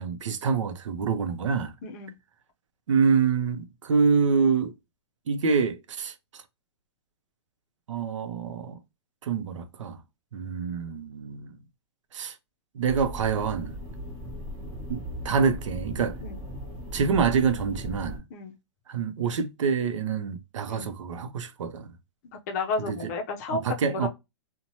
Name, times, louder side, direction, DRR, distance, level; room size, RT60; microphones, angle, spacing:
voice 1, 0.0-1.7 2.9-4.7 5.3-6.1 7.9-8.8 9.2-10.0 10.3-11.5 12.1-12.3 12.7-13.8 14.9-16.2 16.9-18.2 18.9-21.9 22.9-23.0 23.5-24.1, right 5 dB, 85° right, 0.6 m, -26 dB
voice 2, 1.8-2.1 16.2-16.4 18.3-18.5 20.7-20.9 22.5-24.1, left 4 dB, 35° left, 0.5 m, -32 dB
sound 1, 12.8-18.2, equal, 25° right, 1.0 m, -37 dB
2.7 x 2.1 x 2.9 m
hypercardioid pair, 160°, 15 cm